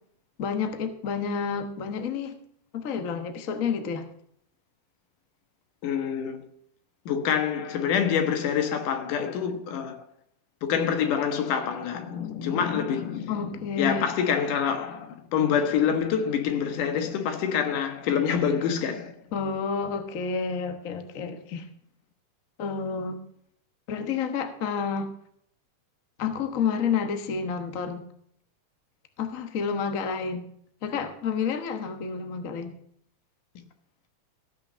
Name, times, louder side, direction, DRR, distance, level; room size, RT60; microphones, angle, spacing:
voice 1, 0.4-2.4 2.7-4.1 13.3-14.1 19.3-21.7 22.6-23.2 23.9-25.1 26.2-28.0 29.2-30.5 30.8-32.7, left 6 dB, 70° left, 0.7 m, -30 dB
voice 2, 5.8-6.4 7.1-10.0 10.6-19.2, left 7 dB, 90° left, 2.9 m, -26 dB
15.5 x 6.2 x 6.7 m
omnidirectional pair, 3.6 m